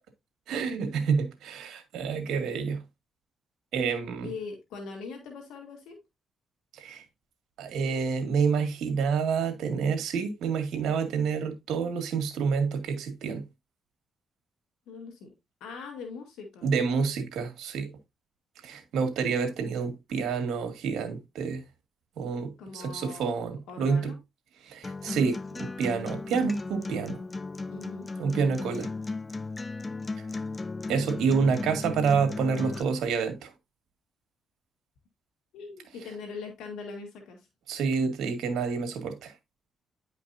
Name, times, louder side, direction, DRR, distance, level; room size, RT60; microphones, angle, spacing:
voice 1, 0.5-2.8 3.7-4.3 6.7-7.0 7.6-13.4 16.6-17.9 18.6-21.6 22.2-24.1 24.6-27.2 28.2-28.9 30.9-33.5 37.7-39.3, right 5 dB, 75° right, 2.0 m, -28 dB
voice 2, 4.2-6.0 14.9-15.3 15.6-16.7 22.6-23.4 23.7-24.2 27.7-28.1 35.5-37.5, left 4 dB, 85° left, 2.0 m, -41 dB
Acoustic guitar, 24.8-32.8, left 3 dB, 25° left, 0.5 m, -36 dB
10.0 x 5.2 x 2.7 m
cardioid pair, 90°, 0 cm